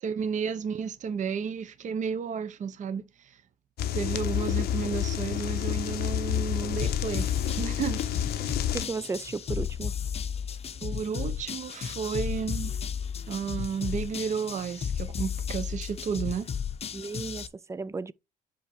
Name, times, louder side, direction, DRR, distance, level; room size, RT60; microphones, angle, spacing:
voice 1, 0.0-3.4 3.9-7.3 7.6-8.0 10.8-12.7 13.3-16.5, right 6 dB, 45° right, 0.9 m, -32 dB
sound 1, 3.8-8.9, left 10 dB, 70° left, 0.8 m, -29 dB
sound 2, 6.8-17.5, left 7 dB, 35° left, 0.7 m, -34 dB
voice 2, 8.7-9.9 16.9-18.1, right 4 dB, 15° right, 0.3 m, -34 dB
5.6 x 4.4 x 5.6 m
cardioid pair, 110°, 17 cm